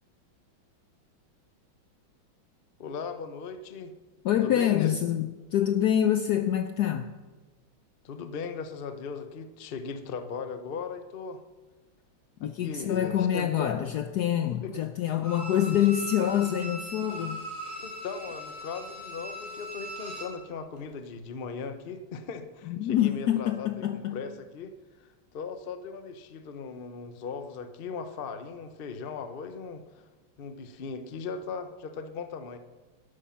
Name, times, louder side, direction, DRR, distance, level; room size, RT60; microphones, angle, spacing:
voice 1, 2.8-3.9 4.3-4.9 8.0-11.4 12.4-13.8 14.6-14.7 17.8-23.7 23.9-24.7 25.0-30.1 30.4-32.6, left 5 dB, 55° left, 0.6 m, -38 dB
voice 2, 4.2-7.1 12.4-17.4 22.7-24.2, left 10 dB, 75° left, 0.9 m, -26 dB
Bowed string instrument, 15.2-20.4 20.8-20.9, right 1 dB, 15° left, 4.5 m, -40 dB
13.0 x 12.0 x 5.7 m
omnidirectional pair, 2.2 m